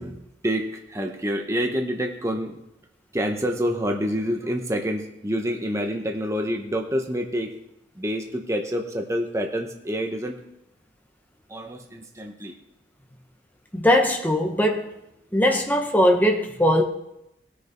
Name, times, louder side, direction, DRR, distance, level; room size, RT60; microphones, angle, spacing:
voice 1, 0.0-2.6 3.1-7.6 7.9-10.4 11.5-12.6, equal, 15° right, 0.9 m, -27 dB
voice 2, 13.7-14.9 15.3-16.8, equal, 10° left, 1.2 m, -20 dB
18.0 x 6.7 x 4.4 m
head